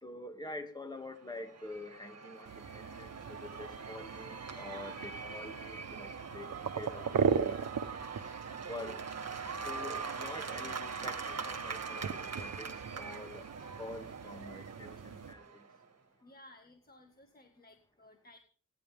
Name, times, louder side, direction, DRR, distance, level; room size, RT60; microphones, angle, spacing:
voice 1, 0.0-7.6 8.7-9.0 9.6-13.4 13.8-15.6, left 2 dB, 15° left, 6 dB, 2.2 m, -46 dB
Cheering / Applause / Crowd, 1.1-15.8, right 5 dB, 55° right, 1.7 m, -43 dB
sound 1, 2.5-15.3, right 6 dB, 85° right, 1.1 m, -39 dB
voice 2, 16.2-18.4, left 1 dB, 30° left, 4 dB, 1.8 m, -58 dB
26.5 x 10.5 x 3.6 m, 0.42 s
wide cardioid pair, 90°, 31 cm